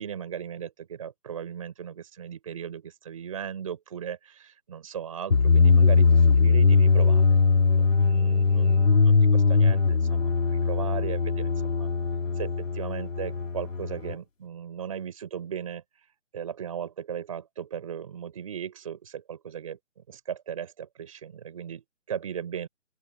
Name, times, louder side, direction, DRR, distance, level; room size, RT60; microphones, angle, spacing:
voice 1, 0.0-7.4 7.7-11.9 12.4-15.8 16.3-22.7, right 8 dB, 25° right, 4.5 m, -37 dB
sound 1, 5.3-14.1, left 4 dB, 90° left, 3.1 m, -21 dB
open air
hypercardioid pair, 180°, 37 cm